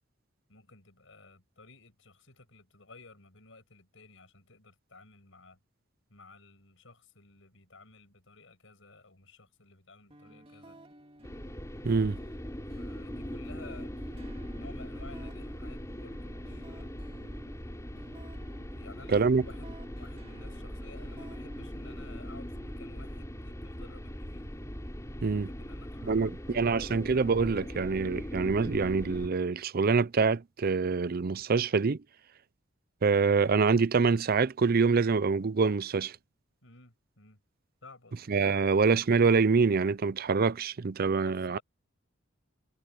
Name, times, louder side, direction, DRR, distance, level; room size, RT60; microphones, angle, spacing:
voice 1, 0.5-5.6 6.1-10.8 12.8-14.0 14.6-17.0 18.8-24.5 25.5-27.0 36.6-37.4 37.8-38.3 41.2-41.6, left 3 dB, 75° left, 6.5 m, -54 dB
sound 1, 10.1-28.1, right 1 dB, 30° right, 2.5 m, -55 dB
sound 2, 11.2-29.3, equal, 15° left, 3.1 m, -40 dB
voice 2, 11.8-12.2 19.1-19.4 25.2-25.5 26.0-32.0 33.0-36.2 38.3-41.6, right 4 dB, 50° right, 0.5 m, -25 dB
head